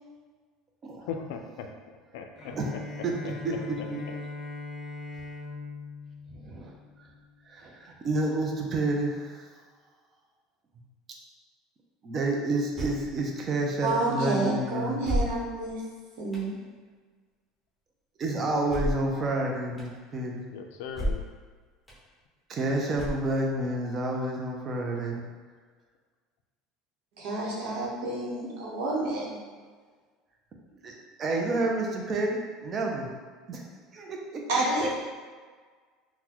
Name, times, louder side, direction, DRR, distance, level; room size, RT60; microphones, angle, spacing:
voice 1, 1.1-1.7 2.1-2.5 3.2-3.3 20.5-21.2, left 7 dB, 85° left, 4 dB, 0.4 m, -37 dB
Bowed string instrument, 2.4-7.3, left 3 dB, 35° left, 0.6 m, -40 dB
voice 2, 3.0-4.0 6.3-6.7 7.0-7.1 7.5-9.5 12.0-15.0 18.2-20.4 22.5-25.2 30.8-33.1 33.5-33.6 33.9-34.9, right 2 dB, 30° right, 0 dB, 0.5 m, -30 dB
sound 1, 12.7-13.1 13.9-14.0 15.0-15.7 16.3-16.5 18.7-19.1 19.8-19.9 20.9-21.4 21.9-22.0 22.9-23.5, equal, 5° left, 0.8 m, -31 dB
voice 3, 13.8-15.8 16.2-16.5 27.2-29.4 34.5-34.9, right 2 dB, 75° right, -3 dB, 0.9 m, -29 dB
3.9 x 2.1 x 2.9 m, 1.5 s
cardioid pair, 145°, 0 cm